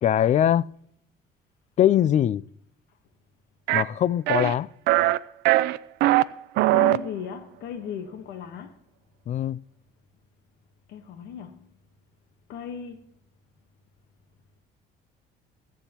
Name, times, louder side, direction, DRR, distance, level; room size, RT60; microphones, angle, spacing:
voice 1, 0.0-0.7 1.8-2.4 3.7-4.7 9.3-9.6, left 11 dB, 45° left, 0.4 m, -21 dB
sound 1, 3.7-3.8 4.3-4.5 4.9-5.2 5.5-6.2 6.6-7.0, right 17 dB, 85° right, 0.4 m, -20 dB
voice 2, 6.7-8.8 10.9-11.7 12.5-13.0, left 8 dB, 80° left, 1.2 m, -36 dB
21.5 x 8.3 x 2.9 m
cardioid pair, 110°, 17 cm